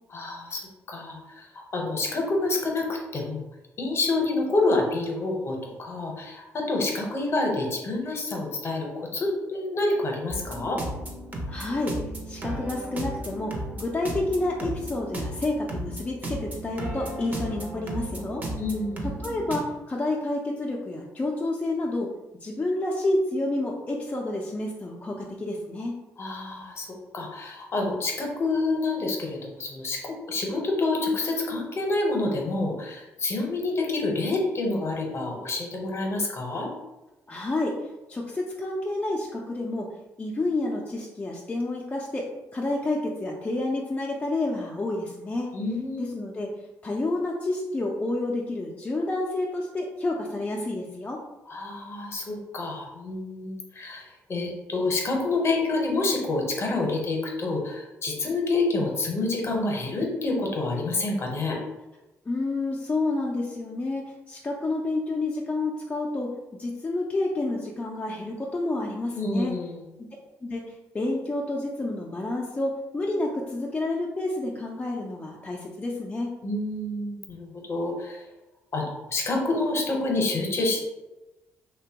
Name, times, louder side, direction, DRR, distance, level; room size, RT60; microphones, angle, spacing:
voice 1, 0.1-0.6 0.9-3.4 3.8-10.8 18.6-19.1 26.2-26.9 27.1-36.7 45.5-46.1 51.5-61.6 69.1-69.8 76.4-78.2 78.7-80.8, left 2 dB, 45° left, 1 dB, 0.7 m, -28 dB
sound 1, 10.3-19.6, right 1 dB, 25° right, 0.7 m, -35 dB
voice 2, 11.5-12.0 12.3-18.5 19.0-22.1 22.4-26.0 37.3-45.5 46.0-46.5 46.8-51.2 62.3-66.3 66.6-69.5 70.0-70.1 70.4-70.6 70.9-76.3, left 2 dB, 25° left, -2 dB, 0.4 m, -29 dB
2.8 x 2.1 x 2.8 m, 1.0 s
supercardioid pair, 65°, 6 cm